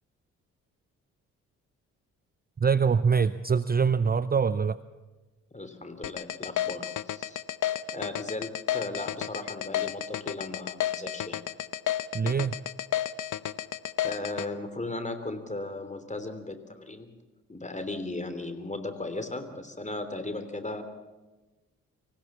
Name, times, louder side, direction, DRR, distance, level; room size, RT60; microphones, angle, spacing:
voice 1, 2.6-4.8 12.1-12.6, right 6 dB, 25° right, 16 dB, 0.7 m, -24 dB
voice 2, 5.5-7.4 7.9-11.4 14.0-17.1 17.5-20.8, left 2 dB, 20° left, 9 dB, 3.3 m, -36 dB
sound 1, 6.0-14.5, left 12 dB, 50° left, 0.9 m, -31 dB
25.0 x 16.5 x 7.4 m, 1.2 s
hypercardioid pair, 40°, 39 cm